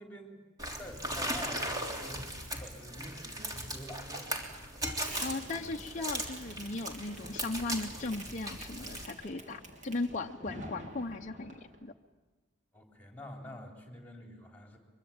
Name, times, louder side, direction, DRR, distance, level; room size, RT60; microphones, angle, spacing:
voice 1, 0.0-4.5 4.7-5.1 12.7-14.8, left 1 dB, 10° left, 2 dB, 3.9 m, -48 dB
sound 1, 0.6-9.0, right 1 dB, 20° right, 3.3 m, -38 dB
Fireworks, 5.0-11.8, right 1 dB, 40° right, 3.3 m, -48 dB
voice 2, 5.2-11.9, left 2 dB, 40° left, 2 dB, 0.8 m, -37 dB
24.0 x 23.5 x 8.8 m, 1.3 s
head